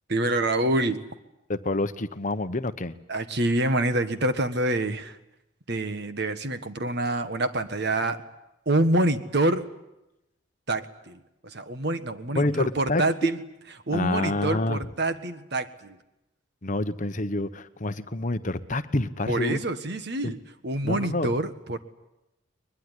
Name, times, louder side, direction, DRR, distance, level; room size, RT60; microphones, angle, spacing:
voice 1, 0.1-1.0 3.1-5.2 5.7-8.2 8.6-9.6 10.7-13.4 13.9-16.0 19.3-21.8, right 1 dB, 55° right, 10 dB, 1.6 m, -26 dB
voice 2, 1.5-2.9 12.3-13.0 13.9-14.8 16.6-19.6 20.2-20.3 20.8-21.3, left 2 dB, 40° left, 11 dB, 1.0 m, -28 dB
22.0 x 21.5 x 9.9 m, 0.91 s
head